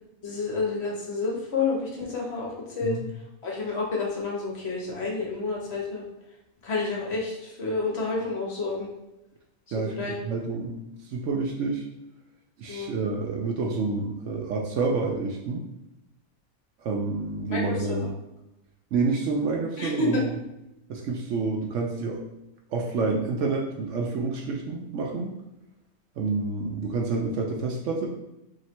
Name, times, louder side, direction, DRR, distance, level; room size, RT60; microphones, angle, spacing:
voice 1, 0.2-3.0 3.4-6.0 6.6-8.9 9.9-10.2 12.7-13.0 17.5-18.1 19.8-20.2, left 3 dB, 55° left, -2 dB, 1.0 m, -29 dB
voice 2, 10.2-10.8 11.0-11.8 12.6-15.6 16.8-18.1 18.9-20.2 20.9-22.2 22.7-25.3 26.2-28.1, right 4 dB, 70° right, 0 dB, 0.8 m, -28 dB
3.1 x 2.8 x 4.3 m, 0.89 s
omnidirectional pair, 1.5 m